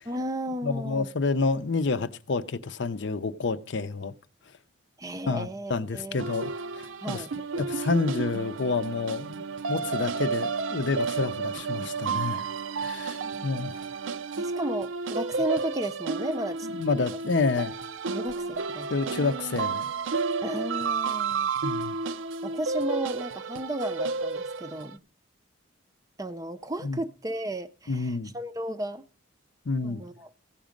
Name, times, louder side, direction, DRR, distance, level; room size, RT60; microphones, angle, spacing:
voice 1, 0.1-1.1 5.0-6.2 7.0-7.3 13.2-13.5 14.4-16.7 18.1-19.2 20.4-21.5 22.4-25.0 26.2-29.0 29.8-30.3, right 1 dB, 15° right, 0.5 m, -34 dB
voice 2, 0.6-4.1 5.3-7.2 7.6-9.4 9.7-12.5 12.8-13.9 16.6-17.7 18.9-20.2 21.6-22.0 26.8-27.0 27.9-28.3 29.7-30.0, left 4 dB, 60° left, 0.6 m, -29 dB
sound 1, 6.2-24.9, right 4 dB, 75° right, 0.5 m, -31 dB
15.5 x 7.3 x 5.1 m
head